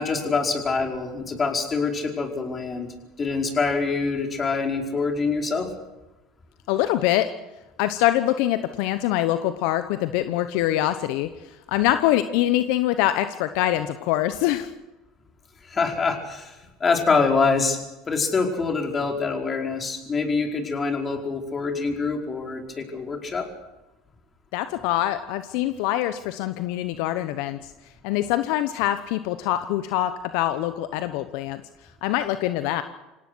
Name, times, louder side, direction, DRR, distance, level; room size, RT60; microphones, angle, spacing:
voice 1, 0.0-5.7 15.6-17.8 18.1-23.5, left 4 dB, 30° left, 2 dB, 4.8 m, -25 dB
voice 2, 6.7-7.3 7.8-14.7 24.5-27.7 28.0-31.6 32.0-32.8, left 13 dB, 70° left, 11 dB, 1.0 m, -24 dB
26.5 x 17.5 x 6.3 m, 1.0 s
hypercardioid pair, 90°, 0 cm